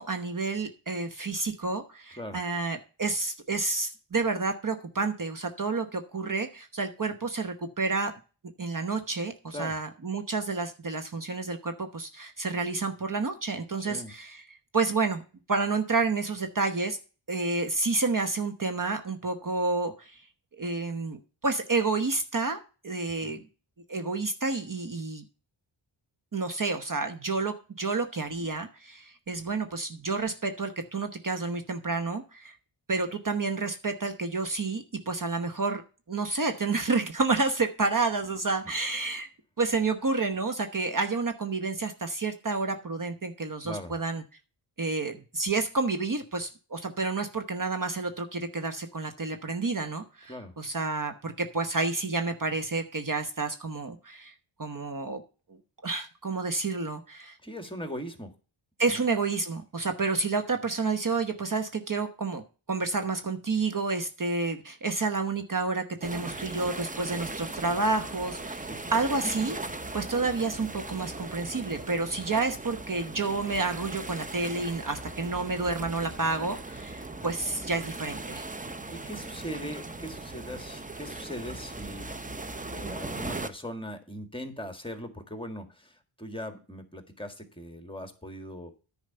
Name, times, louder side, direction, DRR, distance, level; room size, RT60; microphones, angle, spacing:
voice 1, 0.0-8.1 8.6-15.2 15.5-17.0 17.3-20.2 20.6-22.6 22.8-23.4 23.9-25.2 26.3-32.5 32.9-35.8 36.1-39.3 39.6-44.2 44.8-54.3 54.6-55.2 55.5-57.4 58.8-62.4 62.7-68.6 68.9-78.4, right 3 dB, 40° right, 7 dB, 1.1 m, -30 dB
voice 2, 43.6-44.0 50.3-50.5 57.4-58.3 58.9-59.0 66.3-66.4 68.6-69.0 77.2-77.3 78.5-82.1 82.7-88.7, equal, 10° left, 7 dB, 1.7 m, -40 dB
sound 1, 66.0-83.5, right 2 dB, 15° right, 0.7 m, -39 dB
10.5 x 5.0 x 6.7 m, 0.35 s
wide cardioid pair, 90°, 49 cm